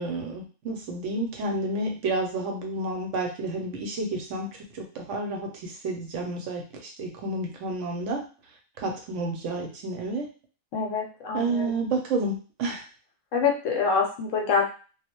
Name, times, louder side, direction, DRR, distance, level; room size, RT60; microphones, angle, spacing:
voice 1, 0.0-8.2 8.8-10.3 11.3-12.8, right 2 dB, 70° right, 1 dB, 0.8 m, -30 dB
voice 2, 10.7-11.9 13.3-14.6, left 5 dB, 70° left, 1 dB, 0.9 m, -26 dB
2.3 x 2.0 x 2.8 m, 0.35 s
omnidirectional pair, 1.5 m